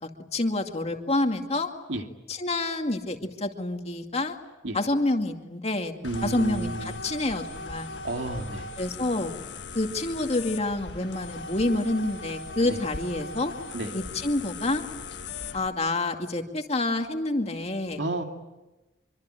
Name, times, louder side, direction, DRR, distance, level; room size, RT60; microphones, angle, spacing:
voice 1, 0.0-1.7 2.3-4.4 4.7-5.9 6.2-7.9 8.8-9.3 9.7-13.5 13.9-14.8 15.5-18.0, left 2 dB, 35° left, 4 dB, 2.3 m, -28 dB
sound 1, 6.0-15.7, left 3 dB, 75° left, 1.6 m, -39 dB
voice 2, 6.0-7.0 8.0-8.7 12.6-12.8 13.7-13.9 18.0-18.2, right 2 dB, 85° right, 4 dB, 2.5 m, -31 dB
26.0 x 24.5 x 9.1 m, 1.1 s
head